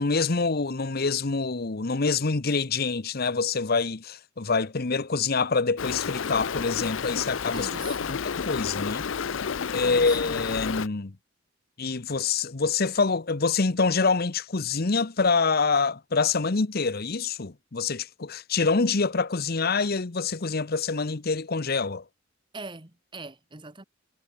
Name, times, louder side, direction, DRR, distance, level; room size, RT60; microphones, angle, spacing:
voice 1, 0.0-7.7 8.1-9.0 9.7-11.1 11.8-22.0, left 4 dB, 50° left, 0.9 m, -26 dB
Stream, 5.8-10.9, left 6 dB, 70° left, 0.6 m, -31 dB
voice 2, 7.5-8.2 9.8-10.3 22.5-23.8, right 3 dB, 25° right, 1.7 m, -41 dB
head